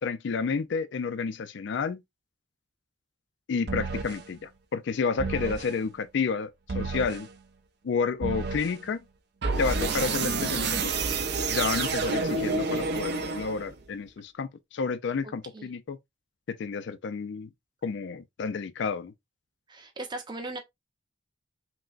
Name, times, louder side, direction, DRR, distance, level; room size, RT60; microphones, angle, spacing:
voice 1, 0.0-2.0 3.5-7.3 7.8-9.0 9.6-10.9 11.5-16.0 16.5-17.5 17.8-19.1, left 5 dB, 65° left, 0.4 m, -30 dB
sound 1, 3.7-4.2 5.2-5.7 6.7-7.2 8.2-8.8 9.4-13.8, right 4 dB, 60° right, 0.6 m, -29 dB
voice 2, 15.2-15.7 19.7-20.6, right 2 dB, 25° right, 0.8 m, -38 dB
5.9 x 2.1 x 2.4 m
head